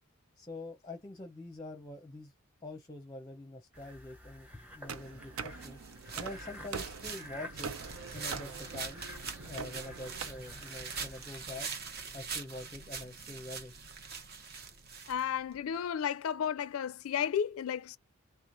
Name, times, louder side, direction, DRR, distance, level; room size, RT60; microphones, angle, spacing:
voice 1, 0.4-2.3 2.6-5.8 6.2-7.7 8.1-9.0 9.4-11.7 12.1-13.7, left 2 dB, 20° left, 0.6 m, -45 dB
sound 1, 3.7-11.3, equal, 5° right, 0.9 m, -51 dB
sound 2, 4.9-10.2, right 5 dB, 75° right, 0.6 m, -43 dB
sound 3, 5.6-15.6, right 5 dB, 45° right, 0.9 m, -43 dB
voice 2, 15.1-18.0, left 8 dB, 80° left, 0.4 m, -33 dB
3.2 x 3.1 x 3.9 m
head